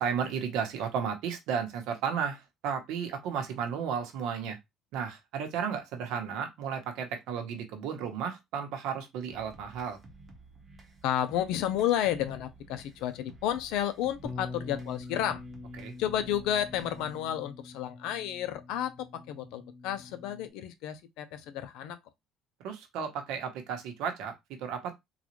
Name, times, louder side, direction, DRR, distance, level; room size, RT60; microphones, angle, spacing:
voice 1, 0.0-4.6 4.9-10.0 15.8-15.9 22.6-24.9, right 7 dB, 75° right, 0.9 m, -33 dB
sound 1, 9.3-17.3, right 2 dB, 25° right, 0.8 m, -54 dB
voice 2, 11.0-15.4 16.0-22.0, left 11 dB, 75° left, 0.6 m, -31 dB
Bass guitar, 14.2-20.5, left 3 dB, 5° left, 0.5 m, -45 dB
3.9 x 2.3 x 3.0 m
cardioid pair, 155°, 0 cm